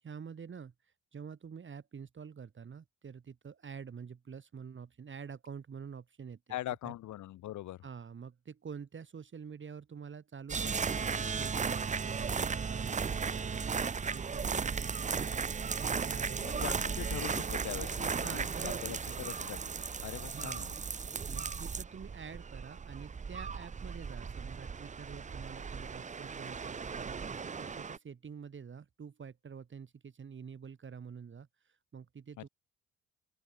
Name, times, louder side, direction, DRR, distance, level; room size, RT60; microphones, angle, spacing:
voice 1, 0.0-6.5 6.8-6.9 7.8-16.5 18.2-19.3 20.3-20.7 21.3-32.5, right 6 dB, 40° right, 2.5 m, -47 dB
voice 2, 6.5-7.8 16.4-19.6 20.0-20.8 32.4-32.5, left 14 dB, 75° left, 1.1 m, -42 dB
sound 1, 10.5-28.0, right 5 dB, 25° right, 0.7 m, -36 dB
open air
cardioid pair, 90°, 30 cm